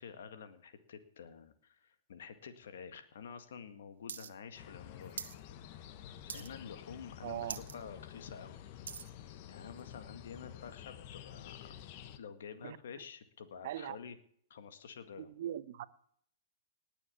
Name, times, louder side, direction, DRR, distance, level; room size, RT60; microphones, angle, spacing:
voice 1, 0.0-5.1 6.2-8.6 9.2-11.7 12.1-14.2 14.5-15.3, left 6 dB, 70° left, 1.9 m, -49 dB
sound 1, 4.1-4.3 4.6-5.4 5.7-6.0 6.3-6.7 7.1-7.2 7.4-7.8 8.2-9.1 9.8-9.9, right 7 dB, 80° right, 1.1 m, -44 dB
sound 2, 4.5-12.2, left 10 dB, 50° left, 1.2 m, -50 dB
voice 2, 7.2-7.6 12.6-12.8 13.6-14.0 15.2-15.9, right 12 dB, 60° right, 1.0 m, -40 dB
19.0 x 7.2 x 7.3 m
hypercardioid pair, 115°, 0 cm